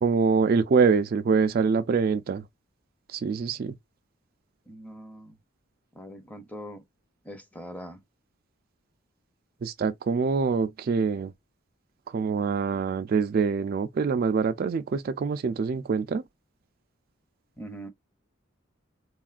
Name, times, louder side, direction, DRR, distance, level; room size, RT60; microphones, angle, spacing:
voice 1, 0.0-2.4 3.1-3.7 9.6-11.3 12.1-16.2, right 5 dB, 45° right, 0.3 m, -25 dB
voice 2, 4.7-5.4 5.9-6.8 7.2-8.0 17.6-17.9, equal, 10° left, 0.6 m, -42 dB
3.5 x 2.3 x 2.3 m
head